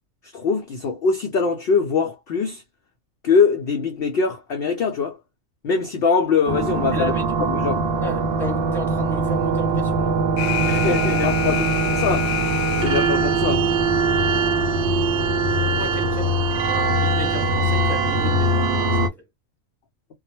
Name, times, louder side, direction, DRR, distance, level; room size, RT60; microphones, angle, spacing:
voice 1, 0.3-2.6 3.2-5.2 5.6-7.1 7.5-7.8 10.6-12.3 12.8-13.7, left 5 dB, 60° left, 0.6 m, -22 dB
sound 1, 6.5-19.1, right 3 dB, 65° right, 0.7 m, -21 dB
voice 2, 6.9-7.5 8.0-10.2 10.7-11.6 15.5-19.2, left 1 dB, ahead, 0.9 m, -33 dB
Alarm, 10.4-13.3, left 10 dB, 90° left, 1.0 m, -28 dB
2.3 x 2.0 x 2.9 m
omnidirectional pair, 1.4 m